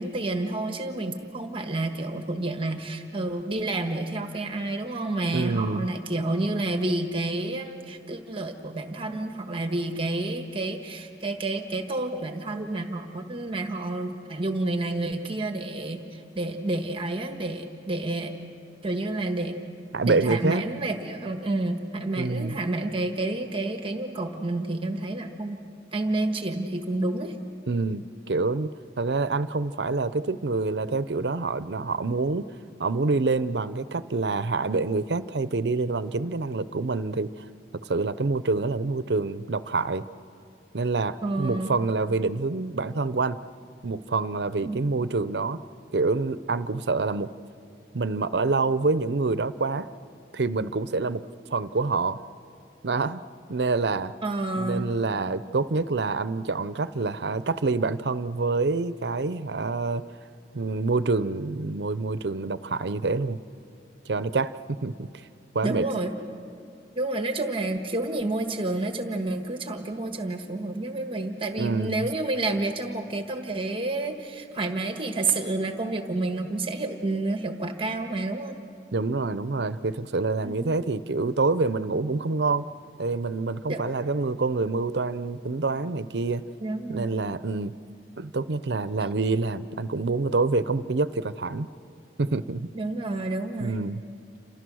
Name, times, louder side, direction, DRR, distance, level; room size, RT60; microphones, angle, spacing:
voice 1, 0.0-18.3 18.8-19.6 20.0-25.6 25.9-27.3 41.2-41.7 44.6-44.8 54.2-54.9 65.6-66.2 66.9-78.6 80.4-80.7 83.7-83.8 86.6-87.1 92.7-93.8, right 2 dB, 30° right, 5 dB, 1.4 m, -29 dB
voice 2, 5.3-5.9 19.9-20.6 22.2-22.6 27.7-28.7 29.0-32.5 32.8-37.3 37.8-40.0 40.7-43.4 43.8-45.6 45.9-47.3 47.9-49.9 50.3-51.2 51.5-52.2 52.8-53.2 53.5-54.1 54.6-60.0 60.5-63.4 64.1-64.5 64.8-65.1 65.5-65.9 71.6-72.1 78.9-82.6 83.0-86.4 86.9-87.7 88.2-91.7 92.2-92.7 93.6-94.0, right 3 dB, 75° right, 15 dB, 0.7 m, -26 dB
29.0 x 26.5 x 6.3 m, 2.4 s
head